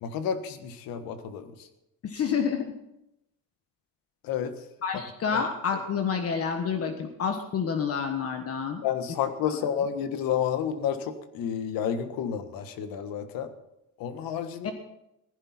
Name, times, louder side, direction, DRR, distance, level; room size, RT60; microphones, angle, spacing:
voice 1, 0.0-1.5 4.2-4.5 5.3-5.4 8.8-13.5 14.0-14.7, left 8 dB, 90° left, 9 dB, 1.5 m, -30 dB
voice 2, 2.0-2.7 4.8-8.8 9.5-9.6 14.6-14.7, left 6 dB, 45° left, 6 dB, 1.4 m, -29 dB
16.5 x 15.0 x 4.3 m, 0.86 s
cardioid pair, 140°, 34 cm